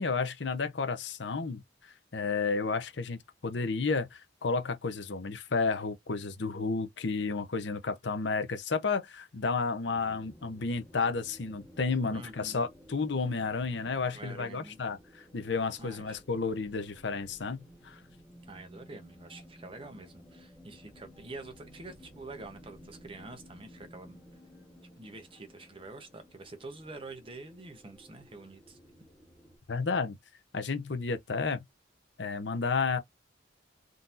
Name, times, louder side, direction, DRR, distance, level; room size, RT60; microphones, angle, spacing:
voice 1, 0.0-18.0 29.7-30.2 30.5-31.6 32.2-33.0, left 4 dB, 65° left, 0.7 m, -32 dB
sound 1, 9.9-29.6, equal, ahead, 1.2 m, -55 dB
voice 2, 12.1-12.7 14.1-14.8 15.8-16.1 18.4-24.2 25.0-28.8, right 2 dB, 30° right, 0.8 m, -46 dB
3.8 x 2.7 x 2.5 m
head